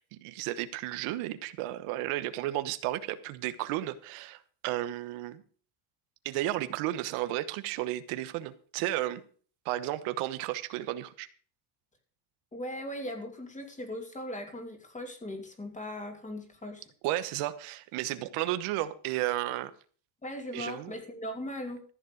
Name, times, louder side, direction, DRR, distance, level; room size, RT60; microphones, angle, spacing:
voice 1, 0.0-5.4 6.2-9.2 9.6-11.3 17.0-19.7 20.5-20.9, right 15 dB, 85° right, 1.3 m, -33 dB
voice 2, 12.5-16.9 20.2-21.8, left 1 dB, 15° left, 2.8 m, -39 dB
14.0 x 7.4 x 6.5 m
cardioid pair, 145°, 49 cm